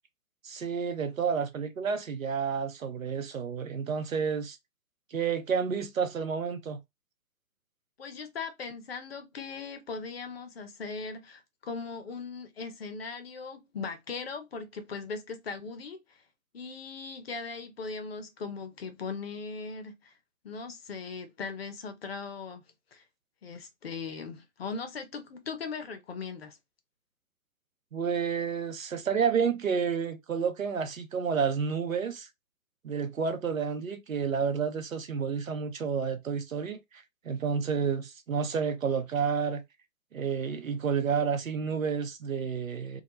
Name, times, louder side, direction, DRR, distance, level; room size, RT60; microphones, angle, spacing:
voice 1, 0.4-4.6 5.1-6.8 27.9-32.3 32.8-39.6 40.1-43.0, right 6 dB, 70° right, 0.7 m, -30 dB
voice 2, 8.0-16.2 16.5-20.1 20.4-22.6 22.9-23.0 23.4-26.6, left 4 dB, 50° left, 0.6 m, -39 dB
2.2 x 2.1 x 3.0 m
figure-of-eight pair, 125°, 41 cm